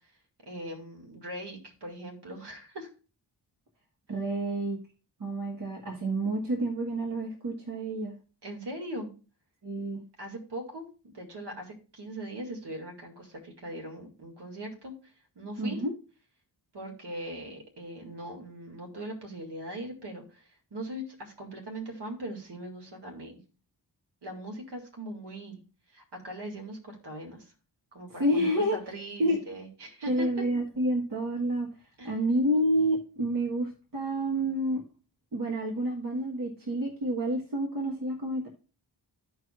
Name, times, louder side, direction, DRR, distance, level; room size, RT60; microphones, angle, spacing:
voice 1, 0.5-2.9 8.4-9.1 10.2-14.9 15.4-15.8 16.7-23.4 24.2-25.6 25.9-27.5 27.9-30.5 32.0-32.2, right 1 dB, 70° right, 1 dB, 2.2 m, -40 dB
voice 2, 4.1-4.8 5.2-8.1 9.6-10.0 15.6-15.9 28.2-28.8 29.2-29.5 30.1-31.7 32.0-34.8 35.3-38.5, right 1 dB, 50° right, 1 dB, 1.4 m, -29 dB
14.0 x 4.7 x 2.4 m, 0.34 s
wide cardioid pair, 90°, 42 cm